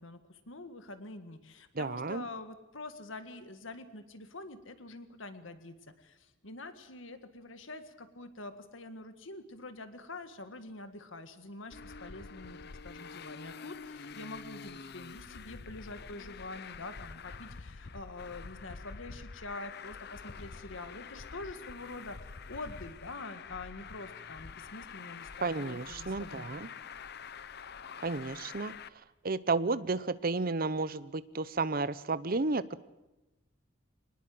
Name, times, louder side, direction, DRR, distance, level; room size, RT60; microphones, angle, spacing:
voice 1, 0.0-26.7, left 2 dB, 75° left, 9 dB, 1.8 m, -46 dB
voice 2, 1.7-2.2 25.4-26.7 28.0-28.7 29.2-32.8, right 3 dB, 45° right, 15 dB, 0.8 m, -32 dB
Traffic noise roadway noise, 11.7-28.9, left 5 dB, 55° left, 0.7 m, -46 dB
24.5 x 20.0 x 7.8 m, 0.99 s
head